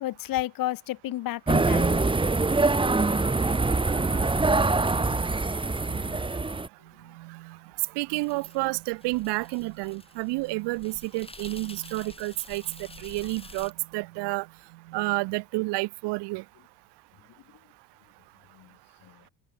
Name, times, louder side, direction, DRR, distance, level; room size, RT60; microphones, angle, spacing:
voice 1, 0.0-2.1 18.5-18.7 19.0-19.1, left 15 dB, 45° left, 0.7 m, -32 dB
sound 1, 1.5-6.7, right 3 dB, 10° right, 1.0 m, -24 dB
sound 2, 3.9-15.6, right 18 dB, 80° right, 2.4 m, -49 dB
voice 2, 7.8-14.5 14.9-16.4, right 24 dB, 55° right, 0.6 m, -30 dB
sound 3, 8.2-13.7, left 2 dB, 10° left, 2.0 m, -49 dB
open air
hypercardioid pair, 60°, 50 cm